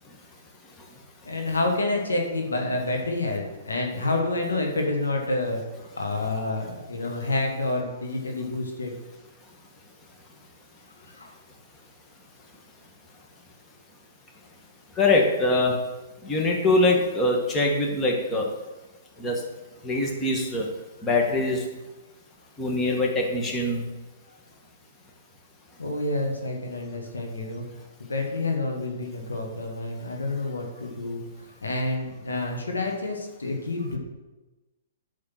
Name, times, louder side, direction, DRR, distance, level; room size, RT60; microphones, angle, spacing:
voice 1, 0.0-1.4 9.4-9.6 14.9-15.8 16.2-18.5 19.2-19.5 19.8-20.7 21.0-21.7 22.6-23.9, left 2 dB, 20° left, 0 dB, 1.9 m, -24 dB
voice 2, 1.2-5.6 6.0-8.9 11.2-11.3 25.8-27.6 28.0-34.0, left 2 dB, 85° left, 2 dB, 2.1 m, -28 dB
9.7 x 6.4 x 6.0 m, 1.1 s
hypercardioid pair, 125°, 0 cm